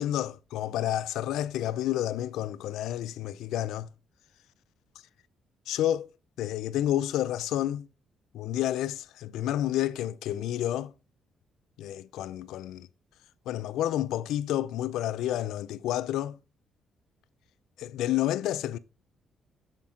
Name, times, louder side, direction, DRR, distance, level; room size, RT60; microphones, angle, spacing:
voice 1, 0.0-3.9 5.7-6.1 6.4-7.9 8.3-10.9 11.8-12.9 13.5-16.4 17.8-18.8, left 12 dB, 85° left, 0.4 m, -30 dB
7.2 x 5.1 x 3.6 m
cardioid pair, 90°, 0 cm